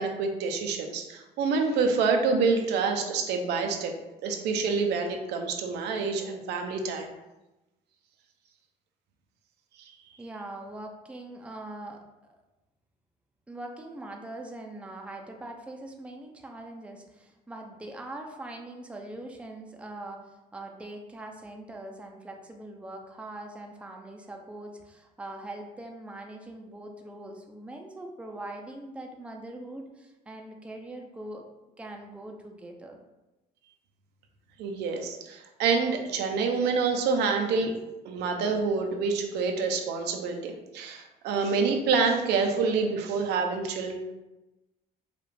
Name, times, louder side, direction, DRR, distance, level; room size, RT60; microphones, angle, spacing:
voice 1, 0.0-3.9 4.2-7.1 9.8-9.9 34.6-37.7 38.0-44.0, right 4 dB, 80° right, 4 dB, 0.6 m, -27 dB
voice 2, 10.2-12.0 12.3-12.4 13.5-31.4 31.8-33.0, right 1 dB, 5° right, 2 dB, 0.5 m, -42 dB
4.9 x 2.4 x 3.3 m, 1.0 s
cardioid pair, 110°, 17 cm